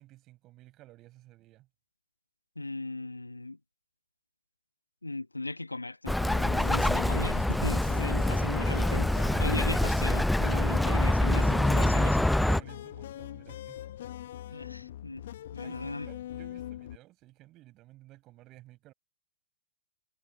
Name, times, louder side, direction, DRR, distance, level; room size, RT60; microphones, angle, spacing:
voice 1, 0.0-1.7 11.9-13.8 14.5-14.6 15.6-18.9, right 17 dB, 35° right, 5.3 m, -54 dB
voice 2, 2.6-3.6 5.0-12.2 14.5-15.2 15.5-16.1, left 2 dB, 90° left, 1.1 m, -37 dB
Bird, 6.1-12.6, left 1 dB, 5° left, 0.5 m, -25 dB
sound 1, 6.2-17.0, left 12 dB, 60° left, 0.9 m, -42 dB
figure-of-eight pair, 105°, 0 cm